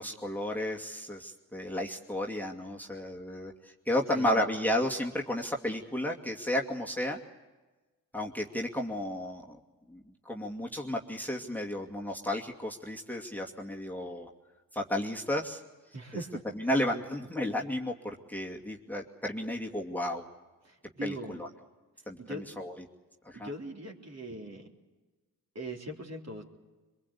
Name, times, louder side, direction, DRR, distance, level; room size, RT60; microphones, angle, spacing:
voice 1, 0.0-7.2 8.1-9.6 9.9-14.3 14.7-15.6 16.5-20.2 21.0-21.5 22.1-22.9 23.2-23.5, left 1 dB, 5° left, 1 dB, 2.4 m, -33 dB
voice 2, 4.1-4.5 15.9-16.4 20.6-21.4 22.2-22.5 23.3-24.7 25.6-26.4, right 1 dB, 35° right, 1 dB, 3.7 m, -40 dB
22.5 x 22.5 x 8.5 m, 1.2 s
hypercardioid pair, 40°, 42 cm